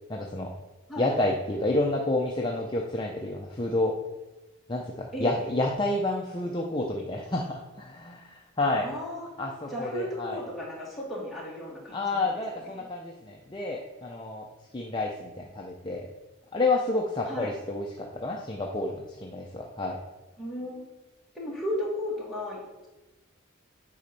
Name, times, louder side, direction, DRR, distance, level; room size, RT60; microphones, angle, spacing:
voice 1, 0.1-0.5 1.0-3.9 4.7-8.9 9.4-10.4 11.9-14.5 14.7-16.1 16.5-20.0, left 2 dB, 20° left, 0 dB, 0.5 m, -29 dB
voice 2, 5.1-5.4 8.6-9.3 9.7-12.3 12.7-12.8 17.2-17.5 20.4-20.8 21.3-22.9, left 1 dB, ahead, -6 dB, 2.0 m, -35 dB
8.3 x 4.2 x 5.3 m, 1.1 s
head